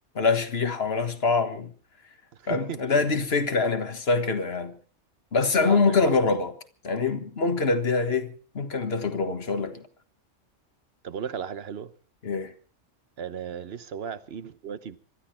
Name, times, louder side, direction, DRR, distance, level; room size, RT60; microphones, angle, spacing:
voice 1, 0.1-1.7 2.5-4.8 5.3-6.5 6.8-9.9 12.2-12.5, left 4 dB, 55° left, 1.7 m, -25 dB
voice 2, 2.4-3.0 5.6-6.4 11.0-11.9 13.2-15.0, right 8 dB, 55° right, 1.1 m, -36 dB
26.0 x 12.5 x 4.4 m
omnidirectional pair, 1.3 m